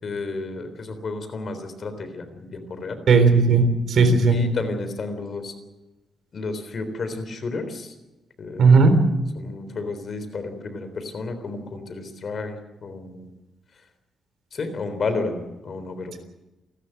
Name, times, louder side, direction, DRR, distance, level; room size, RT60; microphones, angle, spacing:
voice 1, 0.0-3.0 4.3-5.5 6.3-7.9 8.4-8.8 9.4-13.3 14.5-16.2, left 3 dB, 45° left, 9 dB, 3.7 m, -32 dB
voice 2, 3.1-4.4 8.6-9.0, right 4 dB, 60° right, 9 dB, 3.8 m, -16 dB
29.5 x 13.0 x 7.9 m, 1.0 s
cardioid pair, 140°, 0 cm